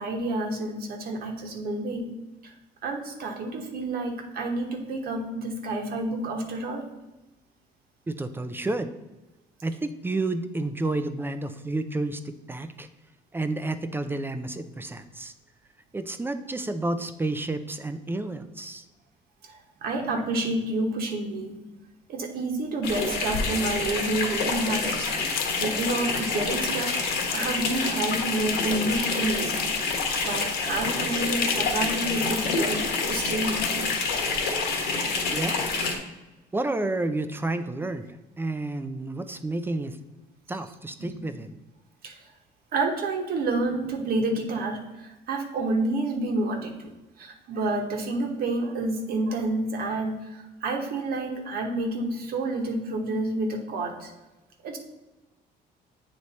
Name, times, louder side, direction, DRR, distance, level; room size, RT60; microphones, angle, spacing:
voice 1, 0.0-2.1 2.4-2.5 2.8-6.9 19.4-21.6 22.1-27.0 27.3-34.1 41.0-41.2 42.0-42.2 42.7-46.9 47.2-54.1 54.6-54.8, right 2 dB, 65° right, 3 dB, 1.1 m, -29 dB
voice 2, 8.1-8.9 9.6-12.9 13.3-15.3 15.9-18.9 35.3-35.6 36.5-38.1 38.4-40.0 40.5-41.6, right 2 dB, 15° right, 9 dB, 0.4 m, -30 dB
sound 1, 22.8-35.9, left 4 dB, 75° left, 1.3 m, -27 dB
sound 2, 24.5-34.4, left 11 dB, 60° left, 0.4 m, -38 dB
8.2 x 3.2 x 4.1 m, 1.0 s
cardioid pair, 110°, 17 cm